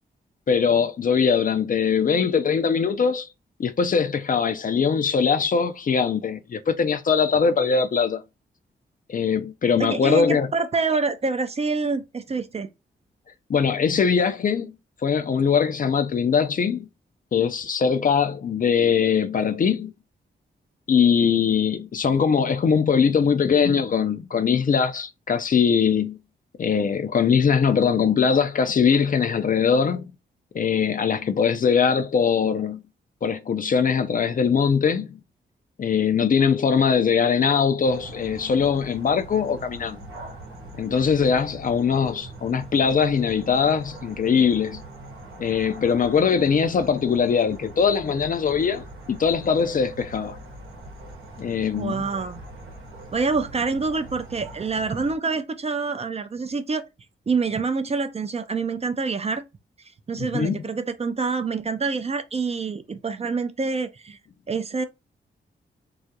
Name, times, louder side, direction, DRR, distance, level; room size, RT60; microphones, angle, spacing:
voice 1, 0.5-3.3 3.6-8.2 9.1-10.5 13.5-14.7 15.0-16.9 17.3-19.9 20.9-26.2 26.6-30.1 30.5-32.8 33.2-35.2 35.8-40.0 40.8-44.8 45.4-50.4 51.4-52.0 60.2-60.6, left 6 dB, 40° left, 0.4 m, -21 dB
voice 2, 9.8-12.7 51.8-52.4 53.1-56.8 57.3-59.4 60.1-64.2 64.5-64.8, right 4 dB, 30° right, 0.4 m, -26 dB
sound 1, 37.8-55.2, right 1 dB, 80° right, 0.9 m, -42 dB
2.3 x 2.0 x 2.7 m
supercardioid pair, 45°, 21 cm